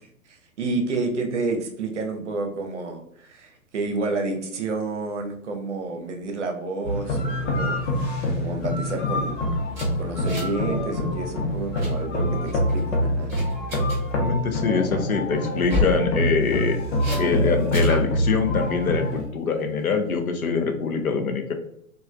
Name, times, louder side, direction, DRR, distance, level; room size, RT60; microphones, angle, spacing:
voice 1, 0.3-7.8 8.4-9.4 10.0-13.3, right 3 dB, 55° right, 4 dB, 0.7 m, -29 dB
sound 1, 6.8-19.2, left 1 dB, 55° left, 1.0 m, -26 dB
sound 2, 9.7-10.6 10.9-11.1 11.5-11.9 12.5-12.8 13.3-14.0 15.5-16.0 17.0-17.2 17.7-18.0, left 2 dB, 5° right, 0.5 m, -29 dB
sound 3, 12.2-14.0 14.4-16.1 16.4-17.8 18.6-19.4, right 1 dB, 30° right, 1.0 m, -39 dB
voice 2, 14.2-16.8 17.2-21.5, left 5 dB, 75° left, 6 dB, 0.6 m, -24 dB
3.1 x 2.3 x 2.4 m, 0.70 s
figure-of-eight pair, 120°, 43 cm